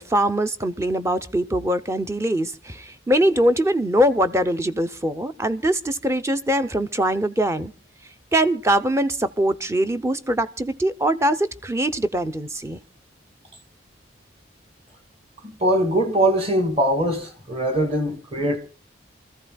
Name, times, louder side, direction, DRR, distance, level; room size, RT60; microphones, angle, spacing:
voice 1, 0.0-7.7 8.3-12.8, right 1 dB, 15° right, 0.6 m, -22 dB
voice 2, 15.4-18.6, right 1 dB, 30° right, 2.4 m, -22 dB
28.5 x 14.5 x 2.3 m
head